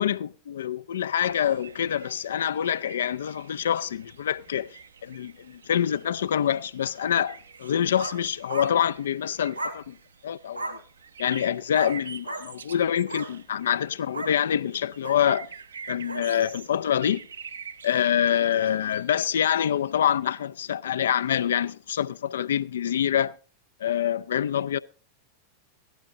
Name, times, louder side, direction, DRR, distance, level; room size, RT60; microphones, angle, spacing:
voice 1, 0.0-4.7 5.0-10.0 10.2-10.8 11.2-15.5 15.9-17.2 17.8-23.3 23.8-24.8, left 9 dB, 65° left, 0.5 m, -26 dB
sound 1, 1.1-19.9, right 6 dB, 70° right, 0.8 m, -47 dB
sound 2, 7.6-8.2 8.5-8.7 9.5-9.8 10.5-10.8 11.7-12.0 12.2-12.5 13.0-13.3 14.1-14.4 15.0-15.2 16.1-16.3, right 2 dB, 85° right, 2.2 m, -34 dB
15.0 x 11.5 x 3.8 m
figure-of-eight pair, 90°, 0 cm